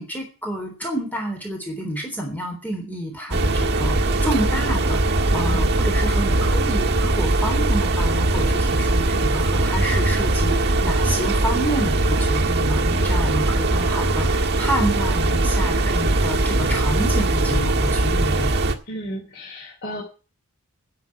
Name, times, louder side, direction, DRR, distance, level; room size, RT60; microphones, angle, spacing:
voice 1, 0.0-18.5, right 1 dB, 10° left, 2 dB, 3.5 m, -29 dB
sound 1, 3.3-18.8, right 2 dB, 50° right, 1.6 m, -20 dB
voice 2, 5.3-5.7 18.9-20.0, equal, 50° left, -2 dB, 3.1 m, -33 dB
11.0 x 7.5 x 9.6 m, 0.35 s
head